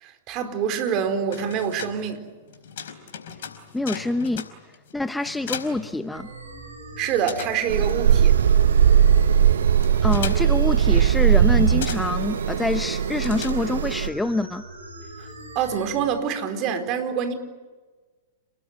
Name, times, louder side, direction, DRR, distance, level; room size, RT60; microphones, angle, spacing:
voice 1, 0.0-2.2 7.0-8.4 15.2-15.3 15.5-17.3, right 7 dB, 40° right, 4.4 m, -26 dB
sound 1, 1.1-6.7 6.9-14.0, left 7 dB, 65° left, 4.6 m, -39 dB
voice 2, 3.7-4.5 4.9-6.3 10.0-14.6, left 2 dB, 5° left, 1.0 m, -26 dB
sound 2, 6.1-16.1, right 2 dB, 90° right, 7.4 m, -41 dB
sound 3, 7.7-14.1, right 9 dB, 75° right, 1.0 m, -19 dB
29.0 x 20.5 x 9.7 m
hypercardioid pair, 105°, 0 cm